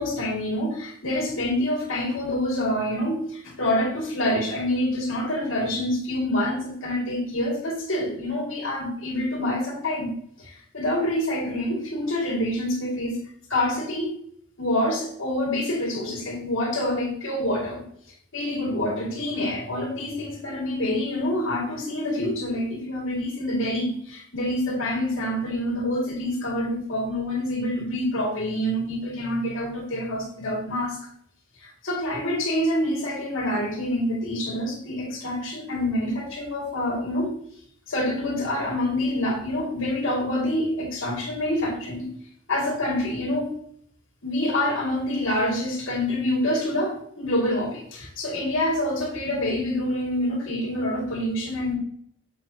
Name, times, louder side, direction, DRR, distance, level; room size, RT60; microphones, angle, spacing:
voice 1, 0.0-10.1 10.4-13.2 13.5-14.1 14.6-17.8 18.3-31.0 31.6-37.3 37.9-42.1 42.5-43.5 44.2-51.8, left 1 dB, 85° left, -2 dB, 2.5 m, -26 dB
7.2 x 6.6 x 2.9 m, 0.64 s
head